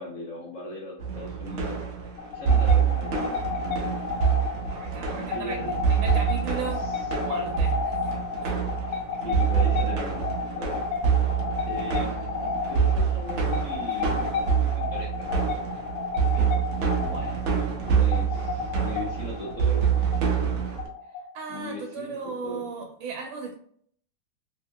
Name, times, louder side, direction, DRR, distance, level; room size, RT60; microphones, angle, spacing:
voice 1, 0.0-1.8 2.3-3.9 5.3-5.7 6.7-7.0 7.3-7.6 7.9-8.0 8.8-10.8 11.1-11.2 11.6-15.5 16.7-17.5 17.9-20.7 21.5-22.7, left 2 dB, 55° left, -4 dB, 0.9 m, -39 dB
sound 1, 1.0-20.9, right 7 dB, 70° right, 0.6 m, -26 dB
sound 2, 2.2-21.6, left 5 dB, 90° left, 1.5 m, -32 dB
voice 2, 4.7-7.7 8.4-8.6 16.2-16.6 17.1-17.4 21.3-23.5, right 5 dB, 85° right, 1 dB, 1.4 m, -36 dB
3.5 x 2.8 x 2.2 m, 0.62 s
omnidirectional pair, 2.0 m